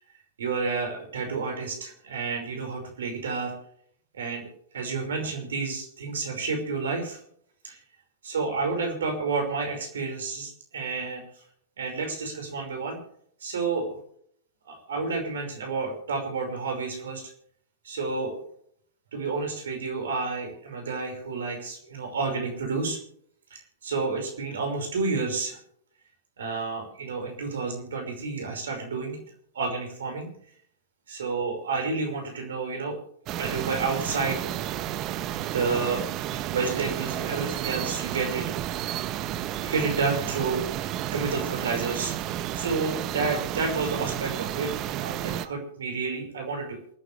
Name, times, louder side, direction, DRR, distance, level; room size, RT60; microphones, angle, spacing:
voice 1, 0.4-3.5 4.2-4.4 4.7-7.2 7.6-7.8 8.2-11.2 11.8-13.0 13.4-14.0 14.7-17.2 17.8-18.4 19.1-23.0 23.5-25.6 26.4-29.2 29.5-30.3 31.1-33.0 33.4-34.4 35.5-36.0 36.3-38.5 39.6-42.1 42.5-46.8, right 4 dB, 75° right, 3 dB, 5.4 m, -30 dB
sound 1, 33.3-45.5, right 12 dB, 40° right, 1.1 m, -32 dB
28.0 x 9.9 x 3.4 m, 0.64 s
hypercardioid pair, 100°, 0 cm